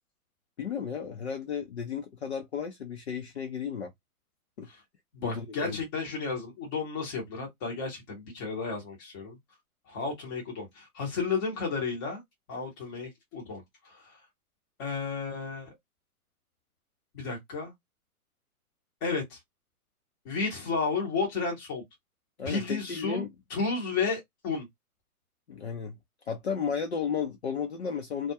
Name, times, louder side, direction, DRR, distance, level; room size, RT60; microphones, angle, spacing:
voice 1, 0.6-3.9 4.6-4.7 5.2-5.8 22.4-23.3 25.5-26.0 26.3-28.3, left 6 dB, 50° left, 0.5 m, -33 dB
voice 2, 5.1-9.4 9.9-12.2 12.5-14.0 14.8-15.7 17.1-17.7 19.0-19.4 20.2-21.8 22.4-23.2 23.5-24.6, left 4 dB, 15° left, 0.8 m, -32 dB
2.3 x 2.1 x 2.7 m
hypercardioid pair, 145°, 45 cm